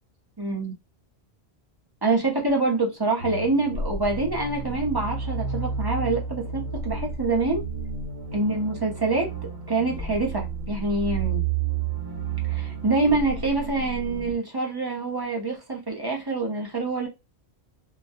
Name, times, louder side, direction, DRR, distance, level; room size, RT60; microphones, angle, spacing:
voice 1, 0.4-0.7 2.0-7.6 8.3-9.3 9.7-11.4 12.5-17.1, right 3 dB, 25° right, 0.6 m, -26 dB
sound 1, 3.2-14.3, right 5 dB, 70° right, 0.9 m, -31 dB
2.4 x 2.1 x 2.6 m
omnidirectional pair, 1.1 m